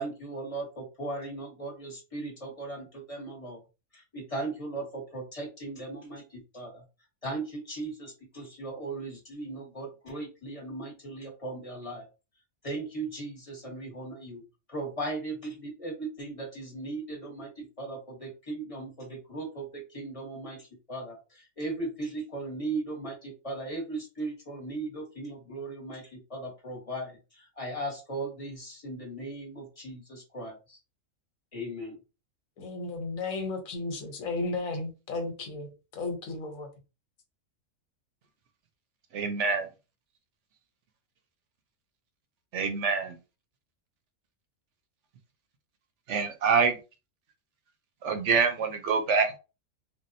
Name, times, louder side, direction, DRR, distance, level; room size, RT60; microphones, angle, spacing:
voice 1, 0.0-3.6 3.9-6.8 7.2-12.1 12.6-14.4 14.7-30.8 31.5-32.0, right 2 dB, 25° left, 1.1 m, -37 dB
voice 2, 32.6-36.7, left 3 dB, 80° left, 1.2 m, -34 dB
voice 3, 39.1-39.7 42.5-43.2 46.1-46.8 48.0-49.4, right 5 dB, 65° right, 0.9 m, -26 dB
3.5 x 2.3 x 2.6 m
omnidirectional pair, 1.4 m